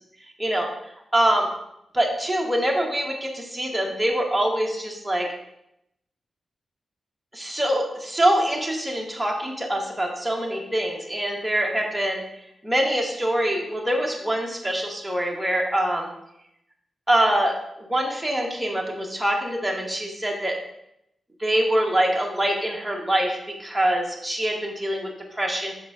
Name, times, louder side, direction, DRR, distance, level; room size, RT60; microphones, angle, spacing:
voice 1, 1.1-1.5 1.9-5.3 7.3-12.2 12.6-16.1 17.1-20.6 21.4-25.7, right 1 dB, 5° right, 0 dB, 1.0 m, -24 dB
6.6 x 3.8 x 4.7 m, 0.80 s
wide cardioid pair, 165°, 0 cm